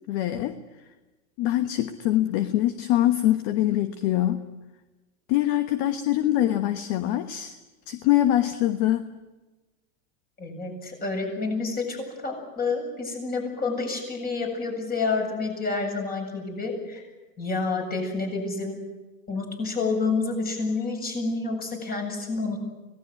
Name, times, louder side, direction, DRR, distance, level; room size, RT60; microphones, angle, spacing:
voice 1, 0.1-0.6 1.4-4.5 5.3-7.5 7.9-9.1, left 13 dB, 45° left, 10 dB, 1.3 m, -24 dB
voice 2, 10.4-17.1 17.4-18.8 19.3-22.6, left 3 dB, 20° left, 2 dB, 7.9 m, -29 dB
25.0 x 18.5 x 9.7 m, 1.1 s
supercardioid pair, 135°, 41 cm